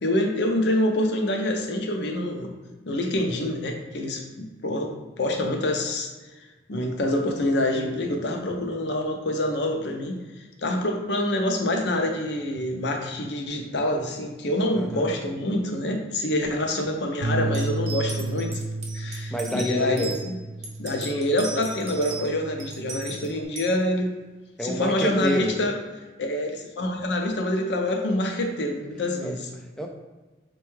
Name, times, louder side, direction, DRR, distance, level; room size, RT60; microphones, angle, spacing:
voice 1, 0.0-2.5 2.9-6.1 6.7-10.2 10.6-18.6 18.9-20.3 20.8-24.1 24.6-25.8 26.2-29.5, left 1 dB, 65° left, 2 dB, 0.5 m, -26 dB
voice 2, 14.7-15.1 17.4-17.5 19.3-20.2 24.6-25.5 29.2-29.9, equal, 5° left, 2 dB, 0.3 m, -29 dB
Bass guitar, 17.2-23.5, right 3 dB, 85° right, 0.3 m, -33 dB
sound 1, 17.5-20.2 20.6-22.3 22.6-23.7, right 4 dB, 35° right, 0.6 m, -37 dB
4.3 x 2.2 x 3.1 m, 1.2 s
head